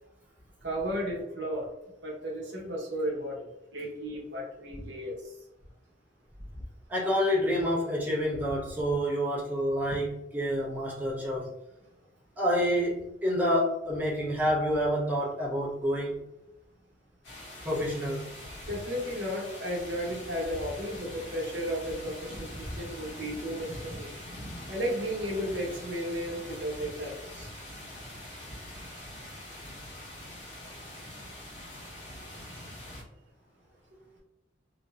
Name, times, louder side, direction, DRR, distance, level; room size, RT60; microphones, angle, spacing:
voice 1, 0.6-1.7 2.0-3.4 3.7-5.3 18.7-24.1 24.7-27.5, equal, 70° right, -2 dB, 0.8 m, -34 dB
voice 2, 6.9-11.5 12.4-16.2 17.6-18.3, equal, 10° right, -6 dB, 0.5 m, -28 dB
sound 1, 17.2-33.0, left 1 dB, 85° left, 1.0 m, -44 dB
2.7 x 2.0 x 2.3 m, 0.89 s
head